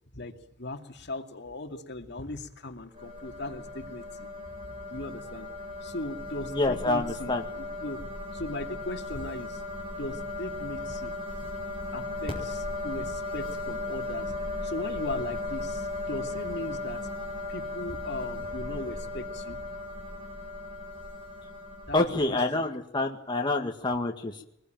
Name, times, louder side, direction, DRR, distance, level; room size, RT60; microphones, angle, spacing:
voice 1, 0.1-4.3 4.9-5.5 5.8-8.0 8.3-9.6 10.0-11.1 11.9-14.3 14.6-17.0 17.5-19.6 21.9-22.6, left 2 dB, 60° left, 4 dB, 2.5 m, -38 dB
sound 1, 3.0-22.2, left 2 dB, 30° right, 7.4 m, -36 dB
voice 2, 6.5-7.4 21.9-24.4, left 2 dB, 25° left, 1 dB, 2.0 m, -27 dB
23.0 x 21.0 x 9.3 m, 0.81 s
head